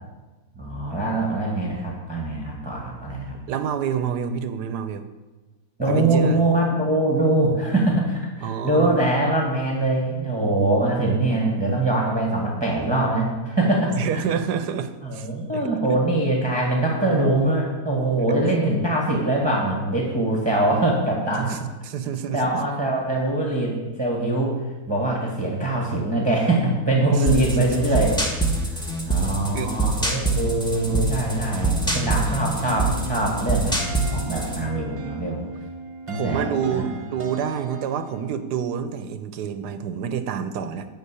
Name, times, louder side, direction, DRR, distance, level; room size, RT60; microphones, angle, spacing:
voice 1, 0.5-3.4 5.8-13.9 15.0-21.6 22.3-24.6 24.9-28.2 28.7-28.8 29.0-35.4 36.1-36.9, right 2 dB, 15° right, -2 dB, 1.6 m, -23 dB
voice 2, 3.5-5.0 5.8-6.4 8.4-9.0 14.0-15.6 15.9-16.0 21.4-21.6 21.8-22.4 27.1-27.3 29.5-29.7 36.1-40.9, right 8 dB, 90° right, 11 dB, 1.3 m, -28 dB
sound 1, 27.3-34.6, right 2 dB, 5° left, 1.5 m, -25 dB
sound 2, 32.7-38.4, right 3 dB, 60° right, 0.3 m, -38 dB
12.0 x 4.4 x 8.3 m, 1.2 s
omnidirectional pair, 1.7 m